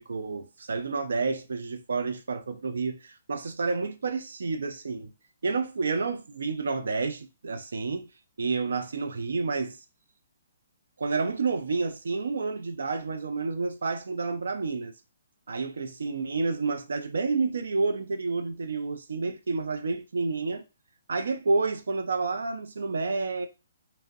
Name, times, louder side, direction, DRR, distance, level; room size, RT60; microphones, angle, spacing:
voice 1, 0.0-5.1 5.4-8.1 8.4-9.8 11.0-14.9 15.5-20.6 21.1-23.5, right 4 dB, 90° right, 0.4 m, -29 dB
2.5 x 2.0 x 2.4 m
hypercardioid pair, 175°, 0 cm